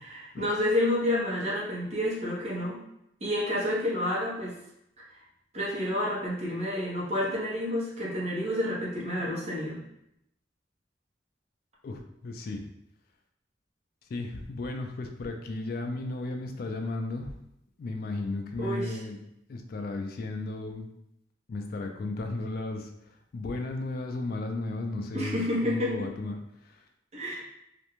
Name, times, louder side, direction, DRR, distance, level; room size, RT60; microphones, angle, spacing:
voice 1, 0.1-2.8 3.2-4.5 5.0-5.1 5.5-9.8 18.6-19.0 25.1-26.1 27.1-27.4, left 1 dB, 40° right, -5 dB, 0.7 m, -29 dB
voice 2, 11.8-12.6 14.1-17.3 17.8-19.2 19.5-20.9 21.5-22.9 23.3-26.4 26.6-26.8, left 2 dB, 55° left, 4 dB, 0.3 m, -34 dB
2.5 x 2.1 x 2.9 m, 0.78 s
head